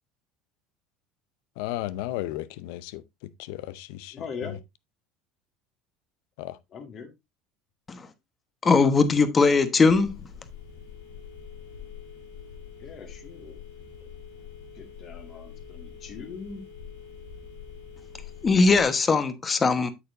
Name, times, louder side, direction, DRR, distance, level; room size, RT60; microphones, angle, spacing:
voice 1, 1.6-3.0 3.4-4.2 4.4-4.5 6.4-6.6, left 15 dB, 75° left, 0.6 m, -34 dB
voice 2, 4.1-4.6 6.7-7.1 12.8-13.6 14.7-16.6, left 5 dB, 45° left, 2.1 m, -40 dB
voice 3, 8.6-10.2 18.4-19.9, left 4 dB, 25° left, 1.1 m, -20 dB
Telephone, 9.9-18.9, left 7 dB, 90° left, 2.4 m, -44 dB
8.6 x 6.8 x 2.6 m
hypercardioid pair, 85°, 0 cm